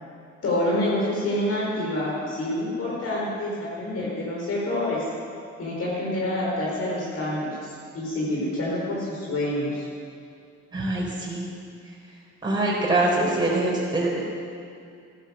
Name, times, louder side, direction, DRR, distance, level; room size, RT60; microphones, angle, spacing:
voice 1, 0.4-5.0 5.6-9.9, left 1 dB, 55° left, -5 dB, 4.7 m, -27 dB
voice 2, 10.7-11.5 12.4-14.2, right 2 dB, 15° right, -5 dB, 4.6 m, -24 dB
14.0 x 13.0 x 7.0 m, 2.4 s
cardioid pair, 90°, 30 cm